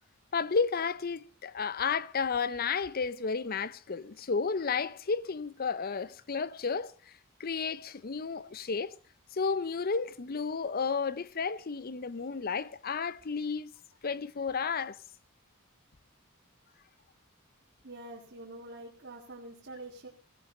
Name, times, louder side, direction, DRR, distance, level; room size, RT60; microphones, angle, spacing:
voice 1, 0.3-7.1 7.4-9.0 9.3-13.7 14.0-15.0, left 5 dB, 45° left, 0.6 m, -32 dB
voice 2, 17.8-20.1, right 2 dB, 55° right, 2.1 m, -46 dB
16.5 x 15.5 x 3.9 m
head